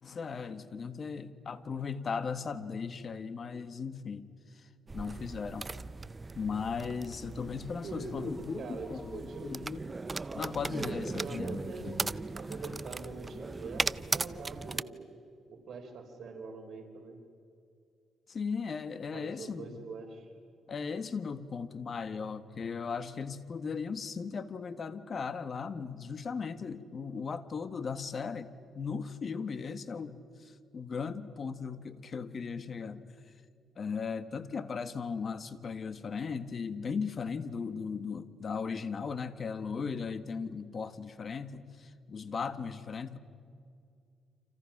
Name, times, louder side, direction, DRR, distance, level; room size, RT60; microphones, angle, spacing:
voice 1, 0.0-5.7 6.3-9.9 10.3-12.1 12.5-12.6 18.3-19.9 20.7-33.0 33.8-43.2, left 5 dB, 45° left, 11 dB, 1.6 m, -37 dB
sound 1, 4.9-14.8, right 3 dB, 25° right, 0.5 m, -38 dB
voice 2, 7.8-8.3 8.6-9.5 10.8-11.9 12.3-15.0 15.5-17.2 19.1-20.3, right 4 dB, 60° right, 3 dB, 4.5 m, -43 dB
30.0 x 27.5 x 6.0 m, 2.4 s
cardioid pair, 90°, 0 cm